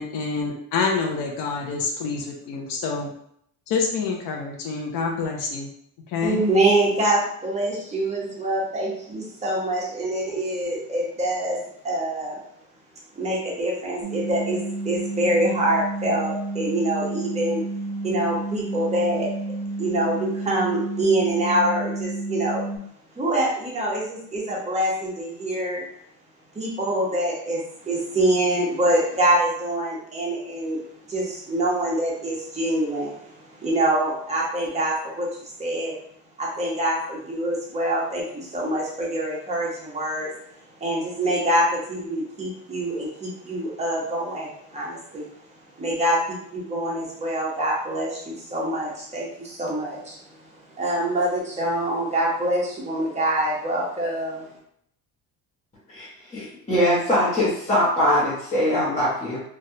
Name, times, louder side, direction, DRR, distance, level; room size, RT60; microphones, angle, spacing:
voice 1, 0.0-3.1 3.7-5.7 6.1-6.4, left 5 dB, 75° left, 1 dB, 0.7 m, -27 dB
voice 2, 6.2-12.4 13.1-17.7 18.0-19.3 19.8-22.6 23.2-25.9 26.5-30.8 31.1-36.0 36.4-40.3 40.8-45.3 45.8-54.5, right 1 dB, 20° right, -4 dB, 1.0 m, -25 dB
sound 1, 14.0-22.8, right 2 dB, 55° right, 1.1 m, -31 dB
voice 3, 55.9-59.4, left 1 dB, 20° left, -8 dB, 1.0 m, -22 dB
3.1 x 2.4 x 2.7 m, 0.69 s
cardioid pair, 125°, 33 cm